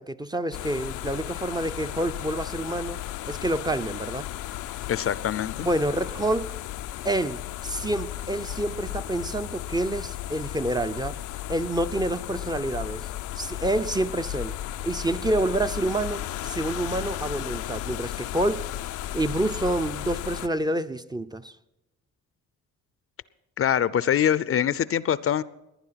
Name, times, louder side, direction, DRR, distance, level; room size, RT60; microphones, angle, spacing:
voice 1, 0.0-3.0 3.3-4.3 5.6-6.6 7.0-11.2 11.5-13.0 13.4-14.5 14.8-18.7 19.1-21.5, right 1 dB, 15° right, 9 dB, 0.6 m, -28 dB
sound 1, 0.5-20.5, left 13 dB, 85° left, 0.6 m, -34 dB
voice 2, 4.9-5.7 23.6-25.4, left 9 dB, 50° left, 18 dB, 0.6 m, -24 dB
18.5 x 10.0 x 5.8 m, 0.95 s
cardioid pair, 90°, 30 cm